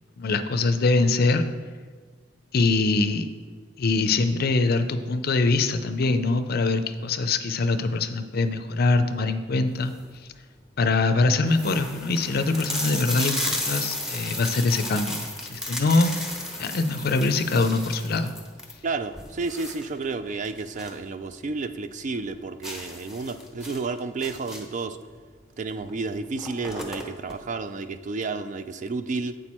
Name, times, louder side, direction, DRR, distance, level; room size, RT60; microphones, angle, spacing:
voice 1, 0.2-1.4 2.5-3.3 3.8-9.9 10.8-16.2 16.6-18.3, left 3 dB, 50° left, 9 dB, 0.5 m, -23 dB
sound 1, 9.7-10.2 10.8-10.9 11.1-11.2 11.5-21.1 21.4-21.5 21.9-22.0 22.6-24.9 25.8-25.9 26.2-27.4, left 1 dB, 5° right, 0.8 m, -33 dB
voice 2, 18.8-25.0 25.6-29.4, right 3 dB, 40° right, 11 dB, 0.3 m, -31 dB
7.8 x 6.1 x 4.3 m, 1.5 s
head